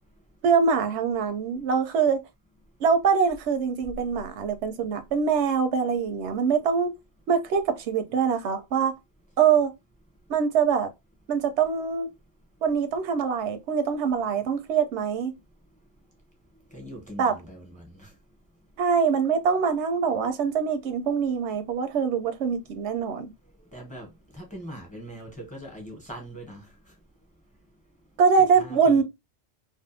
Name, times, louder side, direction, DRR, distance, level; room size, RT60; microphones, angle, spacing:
voice 1, 0.4-2.2 2.8-6.9 7.3-8.9 9.4-9.7 10.3-10.9 11.3-12.1 12.6-15.3 17.2-17.3 18.8-23.3 28.2-29.0, right 6 dB, 90° right, 0.9 m, -23 dB
voice 2, 16.7-18.1 23.7-24.1 24.3-26.7 28.5-29.0, right 1 dB, 10° left, 0.8 m, -41 dB
2.5 x 2.3 x 2.5 m
omnidirectional pair, 1.1 m